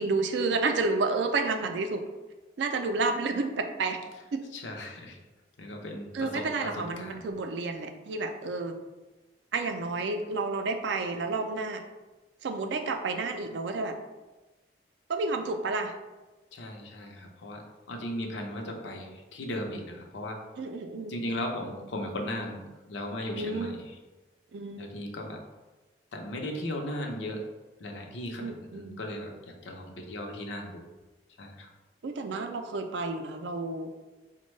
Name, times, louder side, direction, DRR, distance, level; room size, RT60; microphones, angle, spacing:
voice 1, 0.0-2.0 2.6-4.0 4.3-4.4 6.1-8.8 9.5-11.8 12.4-14.0 15.1-15.9 20.6-21.2 23.4-23.7 24.5-24.9 28.4-29.0 32.0-33.9, right 3 dB, 80° right, 6 dB, 0.4 m, -30 dB
voice 2, 4.5-5.2 5.6-7.3 16.5-20.4 21.1-23.9 24.8-25.4 26.1-27.5 27.8-30.9 31.4-31.7, left 1 dB, 90° left, 2 dB, 0.6 m, -37 dB
4.3 x 2.1 x 3.1 m, 1.2 s
head